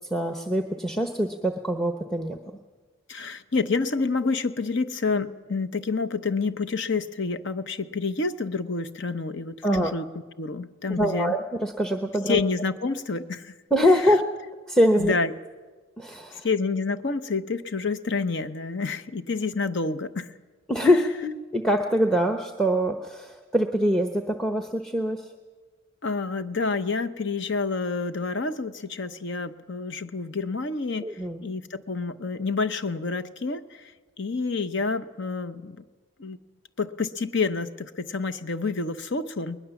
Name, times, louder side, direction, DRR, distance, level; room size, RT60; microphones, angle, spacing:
voice 1, 0.1-2.4 9.6-10.0 10.9-12.4 13.7-14.3 14.7-15.1 16.0-16.5 20.7-25.3 31.0-31.4, equal, ahead, 5 dB, 0.8 m, -24 dB
voice 2, 3.1-10.1 10.4-11.4 12.3-13.6 13.9-14.1 15.0-15.3 16.4-20.3 20.8-21.0 26.0-33.9 34.2-35.8 36.2-36.4 36.8-39.6, left 4 dB, 55° left, 11 dB, 0.8 m, -28 dB
21.0 x 20.5 x 7.1 m, 1.4 s
head